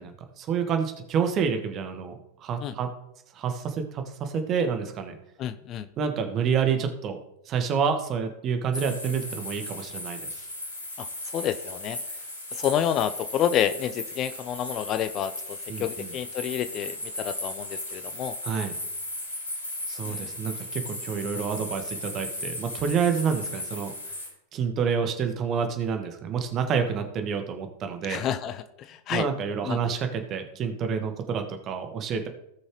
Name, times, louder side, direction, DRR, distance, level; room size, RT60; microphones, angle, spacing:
voice 1, 0.0-2.1 2.4-2.9 3.3-5.2 6.0-7.2 7.4-10.2 15.7-16.1 18.4-18.7 19.9-23.9 24.5-28.2 29.1-32.3, right 6 dB, 30° right, 6 dB, 1.5 m, -28 dB
voice 2, 5.4-5.9 11.0-11.1 11.3-12.0 12.5-18.3 20.0-20.3 28.0-29.3 29.6-29.8, left 10 dB, 35° left, 12 dB, 0.5 m, -29 dB
sound 1, 8.7-24.3, left 1 dB, 75° left, 4.0 m, -36 dB
17.5 x 6.3 x 3.1 m, 0.83 s
figure-of-eight pair, 90°, 0 cm